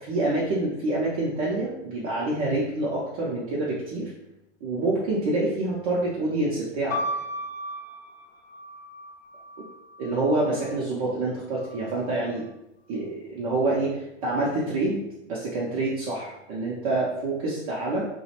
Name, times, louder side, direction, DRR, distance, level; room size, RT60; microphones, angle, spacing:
voice 1, 0.1-4.1 4.6-7.0 10.0-12.5 12.9-18.0, right 2 dB, 30° right, -5 dB, 0.4 m, -27 dB
sound 1, 6.9-10.7 11.6-12.3, equal, 90° left, 0.7 m, -36 dB
2.4 x 2.0 x 2.7 m, 0.87 s
hypercardioid pair, 135°, 37 cm